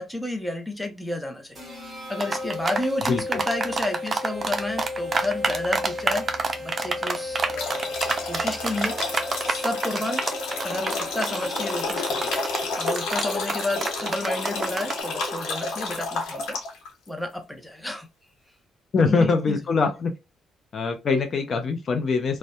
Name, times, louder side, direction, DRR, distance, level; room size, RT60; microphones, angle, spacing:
voice 1, 0.0-6.2 6.6-8.0 8.2-9.2 9.5-10.2 10.6-16.6 17.1-18.1 19.0-19.6, left 1 dB, 5° left, 0.7 m, -31 dB
sound 1, 1.6-12.9, left 2 dB, 15° right, 1.4 m, -35 dB
sound 2, 2.2-15.0, right 4 dB, 35° right, 0.5 m, -27 dB
voice 2, 3.1-3.4 18.9-20.1 20.7-22.4, left 4 dB, 50° left, 0.4 m, -23 dB
sound 3, 7.5-16.9, left 3 dB, 85° left, 0.9 m, -30 dB
2.6 x 2.1 x 2.2 m
cardioid pair, 90°, 0 cm